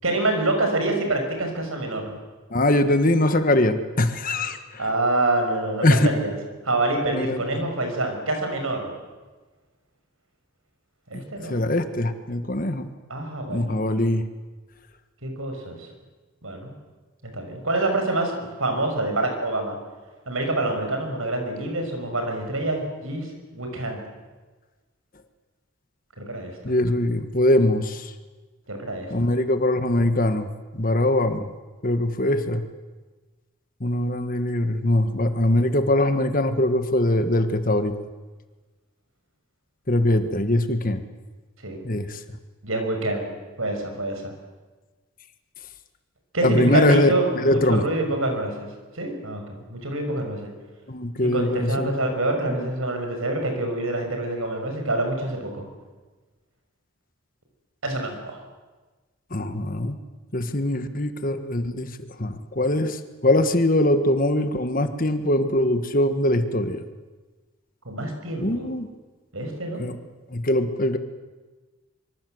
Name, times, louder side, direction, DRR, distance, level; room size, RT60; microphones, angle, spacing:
voice 1, 0.0-2.2 4.8-6.4 6.6-8.9 11.1-11.6 13.1-13.8 15.2-15.9 16.4-16.7 17.3-19.8 20.3-23.3 23.5-24.0 26.2-26.7 28.7-29.3 41.6-41.8 42.6-43.3 43.6-44.3 46.3-48.7 48.9-50.5 51.3-55.6 57.8-58.4 67.8-68.7 69.3-69.8, right 2 dB, 70° right, 4 dB, 6.1 m, -26 dB
voice 2, 2.5-4.6 5.8-6.2 7.1-7.7 11.1-11.2 11.5-12.9 13.5-14.2 26.6-28.1 29.1-30.5 30.8-31.4 31.8-32.6 33.8-37.9 39.9-41.0 41.8-42.2 46.4-47.8 50.9-51.9 59.3-60.0 60.3-61.9 62.2-66.8 68.4-68.9 69.8-70.0 70.3-71.0, left 1 dB, 40° left, 9 dB, 1.5 m, -22 dB
25.0 x 24.5 x 7.9 m, 1.3 s
head